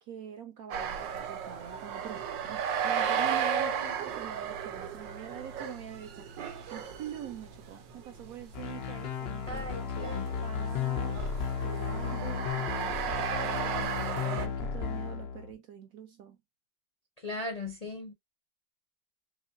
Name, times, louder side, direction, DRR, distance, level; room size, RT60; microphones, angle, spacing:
voice 1, 0.0-11.2 11.6-16.4, right 10 dB, 70° right, 0.9 m, -45 dB
sound 1, 0.7-14.5, right 7 dB, 85° right, 1.5 m, -35 dB
voice 2, 3.5-4.0 9.5-10.3 17.2-18.1, left 2 dB, 40° left, 0.5 m, -39 dB
sound 2, 8.5-15.5, left 7 dB, 90° left, 0.5 m, -34 dB
4.4 x 3.1 x 2.5 m
omnidirectional pair, 1.9 m